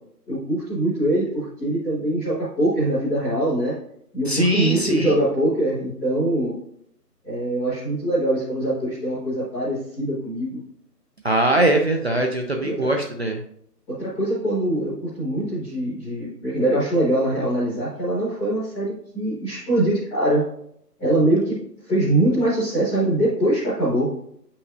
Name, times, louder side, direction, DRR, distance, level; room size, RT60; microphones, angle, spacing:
voice 1, 0.3-3.7 4.1-6.5 7.2-10.6 12.6-12.9 13.9-20.5 21.0-24.1, right 1 dB, ahead, -14 dB, 0.8 m, -23 dB
voice 2, 4.3-5.2 11.2-13.4, right 1 dB, 40° right, 3 dB, 0.5 m, -21 dB
7.9 x 5.6 x 2.7 m, 0.70 s
figure-of-eight pair, 155°, 48 cm